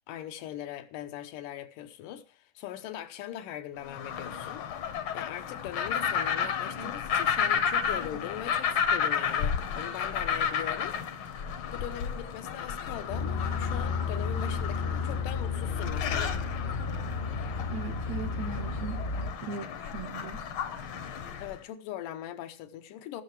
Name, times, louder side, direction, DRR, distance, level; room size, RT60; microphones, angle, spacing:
voice 1, 0.0-10.9 11.7-16.5 21.4-23.2, left 11 dB, 90° left, 2.5 m, -40 dB
sound 1, 3.8-21.6, left 7 dB, 70° left, 1.3 m, -32 dB
sound 2, 13.1-19.3, left 4 dB, 35° left, 0.7 m, -32 dB
voice 2, 17.7-19.0 19.4-20.4, right 5 dB, 75° right, 1.8 m, -39 dB
16.5 x 6.5 x 4.6 m
omnidirectional pair, 3.7 m